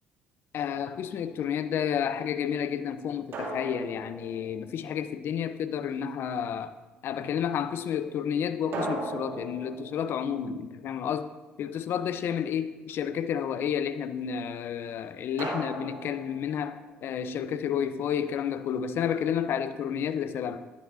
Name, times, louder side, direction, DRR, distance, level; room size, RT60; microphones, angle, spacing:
voice 1, 0.5-6.7 7.0-11.3 11.6-20.6, left 8 dB, 60° left, 11 dB, 0.7 m, -31 dB
sound 1, 0.7-1.3 3.3-5.1 8.7-11.3 15.4-17.0, right 2 dB, 60° right, 2.6 m, -38 dB
13.5 x 13.0 x 2.7 m, 1.1 s
hypercardioid pair, 55°, 4 cm